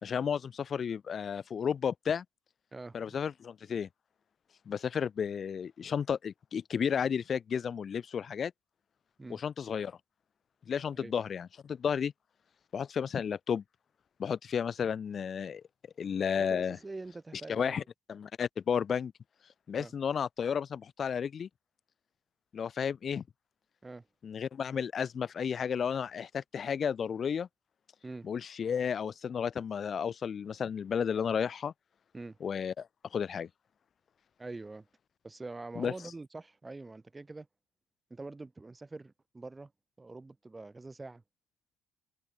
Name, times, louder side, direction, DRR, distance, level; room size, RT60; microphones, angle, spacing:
voice 1, 0.0-2.2 2.9-3.9 4.7-8.5 9.3-10.0 10.7-12.1 12.7-13.6 14.2-15.6 16.0-16.8 17.5-17.8 18.1-19.1 19.7-21.5 22.5-23.2 24.2-27.5 28.2-31.7 32.4-33.5 35.7-35.9, left 7 dB, 45° left, 3.2 m, -32 dB
voice 2, 2.7-3.2 9.2-9.4 10.9-11.1 16.3-17.8 19.7-19.9 23.8-24.1 28.0-28.3 32.1-32.4 34.4-34.9 35.2-37.5 38.1-39.7 40.0-41.2, right 3 dB, 20° right, 6.0 m, -44 dB
supercardioid pair, 80°, 0 cm